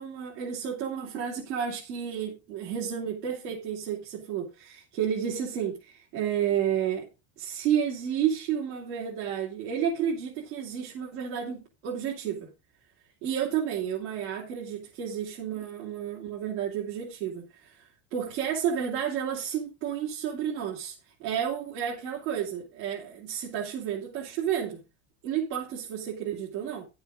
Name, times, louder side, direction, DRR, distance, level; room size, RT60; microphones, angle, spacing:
voice 1, 0.0-7.1 7.4-12.5 13.2-20.9 21.2-24.8 25.2-26.9, right 8 dB, 85° right, 3.2 m, -31 dB
11.5 x 7.1 x 5.1 m
supercardioid pair, 105°, 35 cm